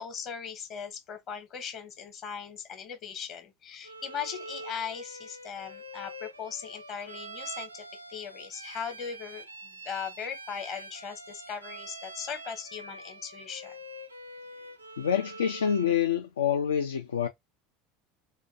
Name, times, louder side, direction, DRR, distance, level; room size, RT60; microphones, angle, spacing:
voice 1, 0.0-13.8, left 7 dB, 45° left, 0.9 m, -39 dB
Bowed string instrument, 3.8-16.0, right 2 dB, 85° right, 0.4 m, -45 dB
voice 2, 15.0-17.3, left 8 dB, 75° left, 0.3 m, -27 dB
2.5 x 2.2 x 2.7 m
figure-of-eight pair, 75°, 0 cm